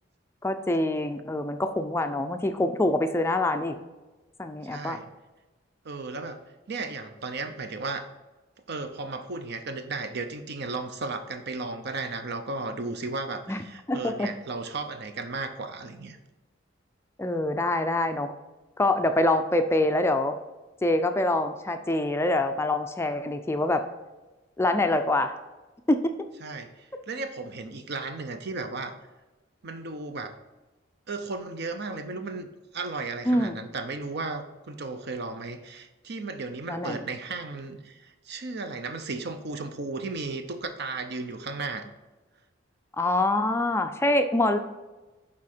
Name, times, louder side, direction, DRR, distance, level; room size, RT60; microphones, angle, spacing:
voice 1, 0.4-3.7 4.4-5.0 13.5-13.6 13.9-14.3 17.2-18.3 18.8-20.4 20.8-23.8 24.6-25.4 25.9-26.1 33.3-33.6 36.7-37.0 43.0-44.6, left 1 dB, 15° left, 7 dB, 0.4 m, -25 dB
voice 2, 4.6-5.1 5.8-6.4 6.7-8.1 8.7-16.2 26.4-28.9 29.6-30.4 31.1-32.5 32.7-41.9, right 3 dB, 60° right, 7 dB, 0.7 m, -35 dB
9.8 x 3.6 x 4.3 m, 1.1 s
head